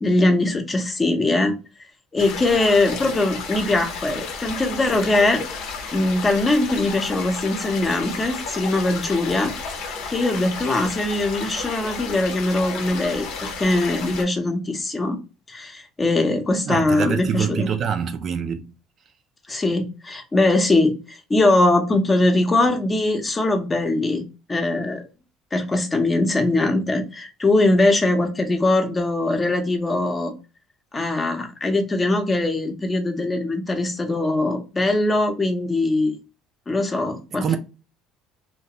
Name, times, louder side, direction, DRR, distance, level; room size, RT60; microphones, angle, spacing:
voice 1, 0.0-1.6 2.1-5.4 5.9-9.5 10.1-15.2 15.5-17.7 19.5-24.2 24.5-25.0 25.5-30.3 30.9-36.2 36.7-37.6, left 2 dB, 20° left, 0.6 m, -21 dB
sound 1, 2.2-14.2, left 5 dB, 75° left, 0.7 m, -32 dB
voice 2, 16.7-18.7 37.4-37.6, right 8 dB, 45° right, 0.3 m, -25 dB
2.3 x 2.1 x 2.8 m
supercardioid pair, 95°, 0 cm